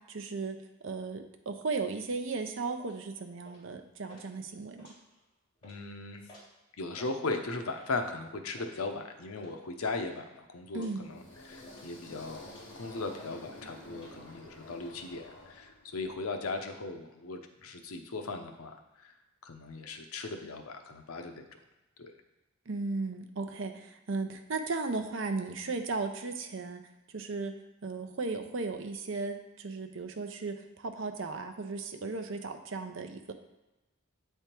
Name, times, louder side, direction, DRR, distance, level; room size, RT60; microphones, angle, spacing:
voice 1, 0.1-4.9 10.7-11.1 22.7-26.8 27.1-27.5 27.8-33.3, right 3 dB, 60° right, 6 dB, 0.6 m, -36 dB
sound 1, 2.8-3.0 3.4-3.7 4.1-4.3 4.7-5.3 5.6-5.8 6.3-6.5 6.8-7.2 7.7-8.0 8.6-8.8 9.4-9.5 9.8-10.2 10.7-10.9 11.4-12.0 12.4-12.8 13.2-13.4 13.6-14.1, equal, 25° left, 2.3 m, -55 dB
voice 2, 5.6-6.3 6.8-12.4 12.8-19.1 19.4-21.5 22.0-22.1, left 3 dB, 85° left, 6 dB, 0.7 m, -38 dB
sound 2, 11.0-16.1, left 2 dB, 60° left, 1.6 m, -50 dB
8.0 x 3.5 x 4.4 m, 1.0 s
head